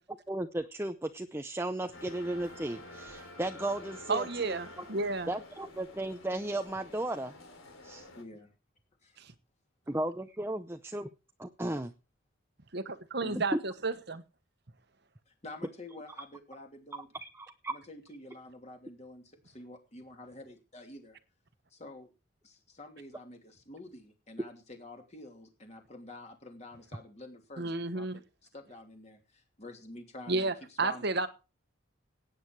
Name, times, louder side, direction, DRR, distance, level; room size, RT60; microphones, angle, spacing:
voice 1, 0.3-4.6 5.3-7.3 7.8-8.1 9.9-11.1 11.4-11.9 17.2-17.7, right 1 dB, 10° right, 0.6 m, -35 dB
sound 1, 1.9-8.2, left 1 dB, 90° left, 3.9 m, -50 dB
voice 2, 4.1-5.3 9.2-9.3 12.7-14.2 27.6-28.2 30.3-31.3, right 3 dB, 55° right, 1.2 m, -32 dB
voice 3, 8.1-8.5 9.0-9.2 13.2-13.4 15.3-17.1 17.7-21.2 21.7-22.1 22.4-28.1 28.5-31.1, left 1 dB, 35° left, 3.0 m, -48 dB
17.0 x 9.3 x 4.7 m
head